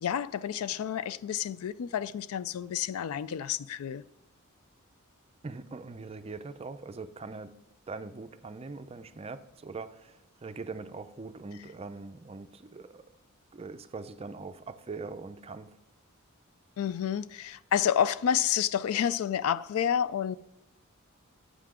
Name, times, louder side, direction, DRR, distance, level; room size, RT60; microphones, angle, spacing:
voice 1, 0.0-4.0 16.8-20.4, left 9 dB, 85° left, 0.3 m, -29 dB
voice 2, 5.4-7.6 7.9-13.1 13.5-15.8, right 4 dB, 30° right, 0.4 m, -42 dB
8.2 x 5.8 x 4.9 m
head